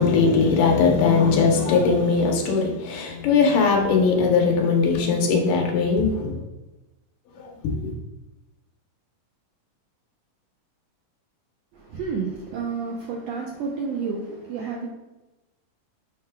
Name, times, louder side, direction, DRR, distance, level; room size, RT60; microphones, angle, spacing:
voice 1, 0.0-6.3 7.6-7.7, left 5 dB, 75° left, 0 dB, 2.5 m, -20 dB
voice 2, 11.9-14.9, right 5 dB, 75° right, -2 dB, 1.5 m, -30 dB
10.0 x 5.8 x 2.3 m, 1.0 s
omnidirectional pair, 3.8 m